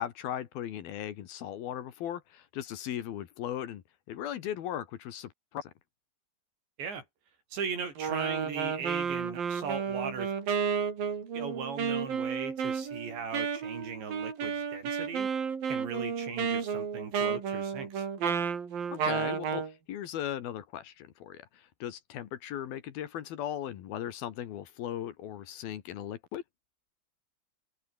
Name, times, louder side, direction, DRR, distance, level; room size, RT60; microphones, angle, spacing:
voice 1, 0.0-3.8 4.1-5.7 18.9-26.4, left 11 dB, 65° left, 3.2 m, -38 dB
voice 2, 7.5-10.3 11.3-15.3 15.7-18.1, right 5 dB, 85° right, 8.2 m, -38 dB
Wind instrument woodwind instrument, 8.0-19.7, right 6 dB, 55° right, 5.5 m, -32 dB
omnidirectional pair, 5.0 m